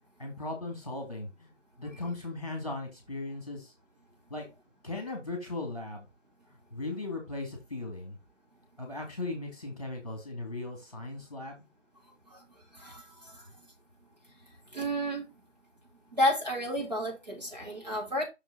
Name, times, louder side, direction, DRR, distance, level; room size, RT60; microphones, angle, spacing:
voice 1, 0.2-1.5 1.8-3.7 4.3-4.5 4.8-6.1 6.7-8.2 8.8-11.7, left 2 dB, 30° left, 3 dB, 2.3 m, -37 dB
voice 2, 12.7-13.4 14.7-15.2 16.1-18.2, equal, 35° right, -3 dB, 2.0 m, -31 dB
6.2 x 4.9 x 4.0 m, 0.24 s
figure-of-eight pair, 175°, 36 cm